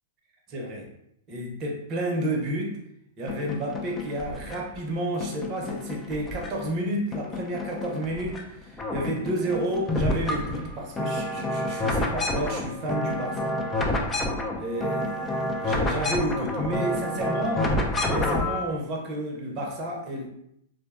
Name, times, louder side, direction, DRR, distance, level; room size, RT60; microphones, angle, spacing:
voice 1, 0.5-0.9 1.3-2.8 3.2-13.6 14.6-17.7 18.0-20.3, right 1 dB, 35° right, 0 dB, 0.6 m, -31 dB
sound 1, 3.3-4.8 5.2-6.8 7.1-8.4 8.7-18.6, left 1 dB, 20° left, 0.3 m, -29 dB
2.5 x 2.1 x 2.4 m, 0.76 s
hypercardioid pair, 125°, 0 cm